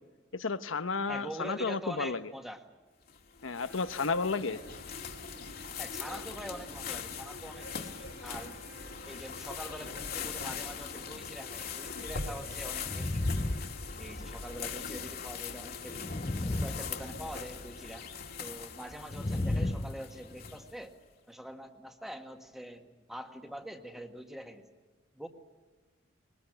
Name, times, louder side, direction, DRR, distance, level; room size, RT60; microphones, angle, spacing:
voice 1, 0.3-2.3 3.4-4.6, left 4 dB, 85° left, 11 dB, 1.0 m, -32 dB
voice 2, 1.1-2.6 4.4-4.6 5.8-8.6 9.0-13.2 14.0-16.1 16.5-18.1 18.4-20.9 21.3-24.7 25.1-25.3, equal, ahead, 5 dB, 1.7 m, -44 dB
sound 1, 3.1-20.9, left 6 dB, 50° left, 2.1 m, -41 dB
sound 2, 3.6-13.6, right 2 dB, 55° right, 3.4 m, -55 dB
sound 3, 12.8-14.4 15.8-17.5 19.1-20.6, left 1 dB, 25° left, 0.7 m, -34 dB
23.0 x 20.5 x 9.0 m, 1.3 s
head